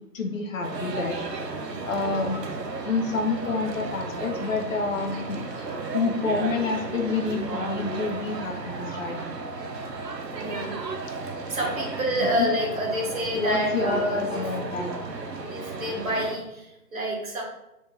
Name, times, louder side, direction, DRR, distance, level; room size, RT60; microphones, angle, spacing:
voice 1, 0.1-1.2 1.9-2.4 2.8-5.4 5.9-9.2 13.3-15.0, left 4 dB, 55° left, 2 dB, 0.6 m, -28 dB
sound 1, 0.6-16.4, right 3 dB, 85° right, 0.7 m, -34 dB
voice 2, 10.3-10.8 11.5-14.5 15.5-17.4, equal, 55° right, -2 dB, 1.2 m, -28 dB
3.7 x 2.6 x 2.7 m, 0.91 s
figure-of-eight pair, 150°, 48 cm